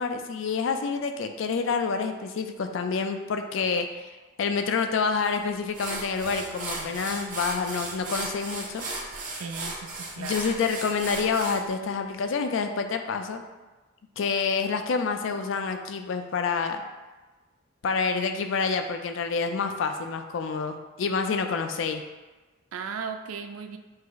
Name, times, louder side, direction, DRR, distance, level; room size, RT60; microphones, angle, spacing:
voice 1, 0.0-8.9 10.2-13.4 14.2-16.8 17.8-22.0, left 5 dB, 60° left, 6 dB, 0.4 m, -28 dB
sound 1, 5.2-5.4 5.7-11.6, right 3 dB, 40° right, 0.8 m, -35 dB
voice 2, 9.4-10.4 22.7-23.8, right 5 dB, 90° right, 7 dB, 0.4 m, -37 dB
5.2 x 2.0 x 3.9 m, 1.2 s
head